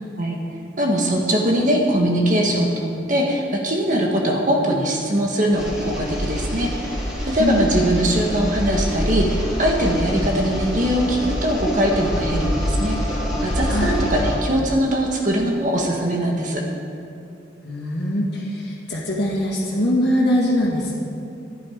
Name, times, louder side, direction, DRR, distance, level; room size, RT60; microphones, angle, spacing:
voice 1, 0.8-6.7 7.2-16.6, equal, 45° right, 0 dB, 1.4 m, -21 dB
sound 1, 5.5-14.3, equal, ahead, 3.0 m, -25 dB
voice 2, 13.7-14.0 17.6-20.9, left 1 dB, 60° left, -5 dB, 2.0 m, -22 dB
12.5 x 11.0 x 5.0 m, 2.6 s
head